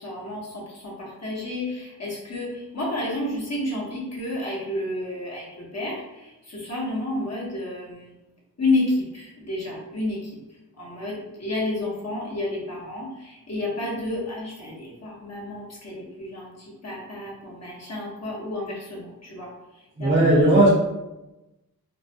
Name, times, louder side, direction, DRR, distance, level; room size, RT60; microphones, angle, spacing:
voice 1, 0.0-8.1 8.6-20.1, left 2 dB, 45° left, -4 dB, 1.0 m, -31 dB
voice 2, 20.0-20.7, right 1 dB, 30° right, -3 dB, 0.6 m, -16 dB
2.3 x 2.1 x 2.7 m, 0.97 s
cardioid pair, 50°, 37 cm